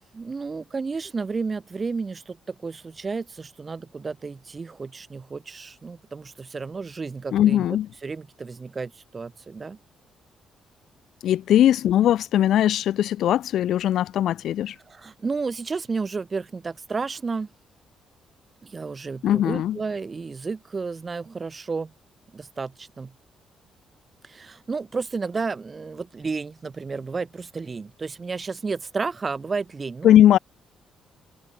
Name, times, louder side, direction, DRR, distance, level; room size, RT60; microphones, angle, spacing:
voice 1, 0.1-7.6 8.0-9.8 14.9-17.5 18.6-21.9 22.3-23.1 24.2-30.1, right 4 dB, 30° right, 1.6 m, -32 dB
voice 2, 7.3-7.9 11.2-14.8 19.2-19.8 30.0-30.4, left 11 dB, 75° left, 0.4 m, -19 dB
cardioid pair, 90°, 0 cm